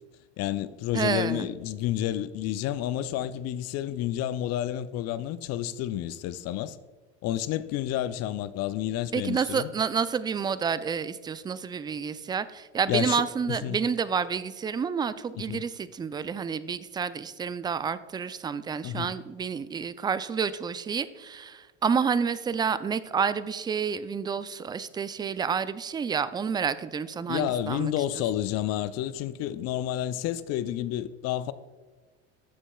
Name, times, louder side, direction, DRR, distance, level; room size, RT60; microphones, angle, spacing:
voice 1, 0.4-6.8 7.2-9.7 12.9-13.8 15.5-15.6 18.8-19.1 27.3-31.5, left 12 dB, 45° left, 0.5 m, -30 dB
voice 2, 0.9-1.5 9.1-28.2, right 6 dB, 15° right, 0.3 m, -29 dB
12.5 x 6.9 x 2.3 m
hypercardioid pair, 75°, 34 cm